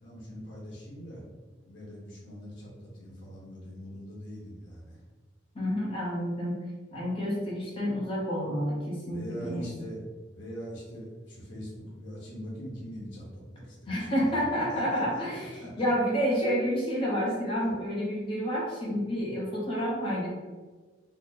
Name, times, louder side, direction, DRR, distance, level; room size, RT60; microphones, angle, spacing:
voice 1, 0.0-1.2 1.6-5.0 9.1-10.0 10.3-15.9, equal, 85° left, -5 dB, 1.4 m, -42 dB
voice 2, 5.5-6.6 6.9-9.7 13.9-20.3, equal, 30° left, -5 dB, 0.8 m, -29 dB
3.7 x 2.1 x 4.0 m, 1.4 s
head